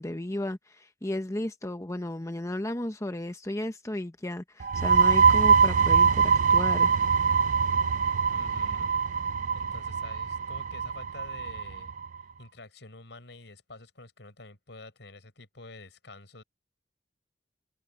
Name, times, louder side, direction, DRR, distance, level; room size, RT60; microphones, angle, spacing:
voice 1, 0.0-6.9, left 1 dB, 15° left, 0.8 m, -34 dB
sound 1, 4.6-12.1, right 6 dB, 45° right, 0.4 m, -23 dB
voice 2, 8.3-8.9 9.5-11.9 12.4-16.4, left 2 dB, 80° left, 5.0 m, -48 dB
open air
head